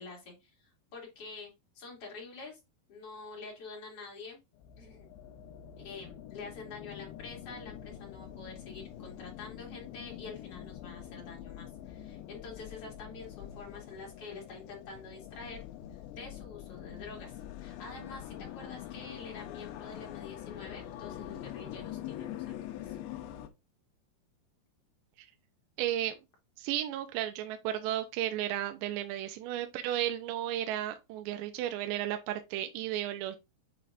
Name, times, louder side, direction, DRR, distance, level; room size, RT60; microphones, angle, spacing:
voice 1, 0.0-2.6 2.9-4.4 4.8-5.1 5.8-15.6 15.9-23.0, left 4 dB, 40° left, 2.8 m, -47 dB
sound 1, 4.5-23.5, left 11 dB, 85° left, 3.1 m, -45 dB
voice 2, 25.8-26.2 26.6-33.4, right 12 dB, 85° right, 2.8 m, -34 dB
7.9 x 4.8 x 2.5 m
omnidirectional pair, 5.0 m